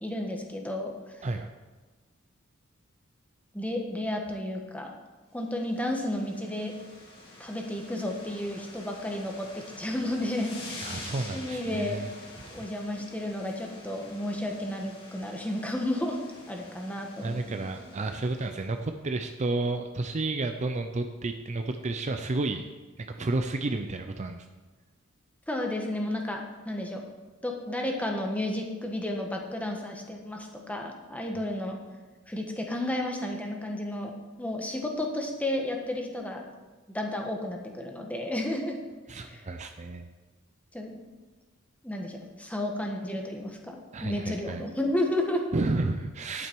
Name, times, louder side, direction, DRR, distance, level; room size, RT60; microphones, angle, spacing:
voice 1, 0.0-0.9 3.5-4.9 5.3-6.7 7.4-9.5 9.8-10.9 11.3-12.0 12.5-16.2 16.5-17.7 25.5-27.0 27.4-31.8 32.3-34.1 34.4-36.4 36.9-38.8 39.1-39.4 40.7-41.0 41.8-45.4, left 1 dB, 5° left, 1 dB, 1.3 m, -32 dB
sound 1, 5.5-18.7, left 2 dB, 50° left, 3.4 m, -47 dB
voice 2, 10.8-12.1 17.2-22.6 23.0-24.5 39.1-40.1 43.9-44.6 45.5-46.5, right 2 dB, 35° right, 6 dB, 0.5 m, -31 dB
10.5 x 9.0 x 4.6 m, 1.3 s
head